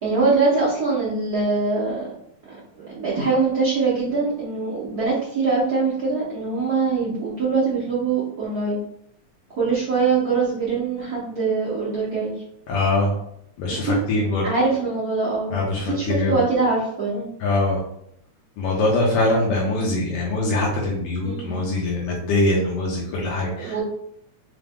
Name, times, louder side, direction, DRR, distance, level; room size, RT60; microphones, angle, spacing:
voice 1, 0.0-2.1 2.8-8.8 9.6-12.3 13.8-14.0 14.4-15.5 15.9-17.3 21.2-21.6 23.5-23.8, right 4 dB, 80° right, -9 dB, 0.8 m, -23 dB
voice 2, 12.7-13.1 13.6-14.5 15.5-16.4 17.4-17.8 18.6-23.8, left 2 dB, 70° left, -3 dB, 1.6 m, -23 dB
4.9 x 2.2 x 3.5 m, 0.72 s
omnidirectional pair, 3.3 m